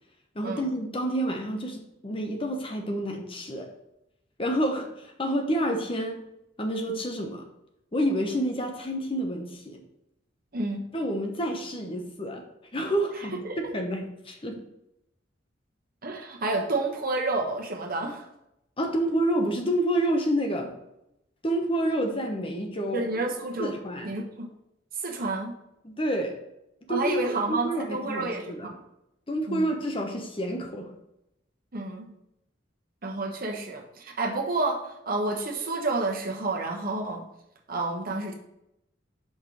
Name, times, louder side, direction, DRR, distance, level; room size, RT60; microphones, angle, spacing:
voice 1, 0.3-3.7 4.4-6.2 6.6-7.4 7.9-9.8 10.9-12.4 12.7-13.4 13.7-14.6 18.8-20.8 21.4-23.0 23.6-24.1 25.8-26.4 26.9-28.7 29.3-30.9, right 1 dB, 30° left, 3 dB, 1.0 m, -28 dB
voice 2, 10.5-10.9 13.4-13.6 16.0-18.2 22.9-23.7 24.0-24.5 25.0-25.6 26.9-28.7 29.5-29.7 31.7-32.1 33.0-37.2 37.7-38.3, right 2 dB, 50° right, 1 dB, 1.2 m, -30 dB
5.5 x 4.4 x 6.3 m, 0.84 s
head